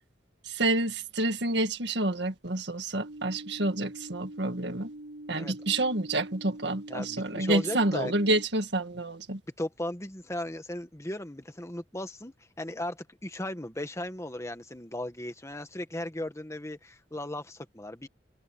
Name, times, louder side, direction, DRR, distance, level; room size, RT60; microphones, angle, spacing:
voice 1, 0.4-4.9 5.3-9.4, right 2 dB, 65° right, 2.1 m, -28 dB
sound 1, 3.0-8.5, right 1 dB, 85° right, 6.0 m, -44 dB
voice 2, 6.9-8.1 9.6-18.1, left 1 dB, 15° left, 1.6 m, -36 dB
head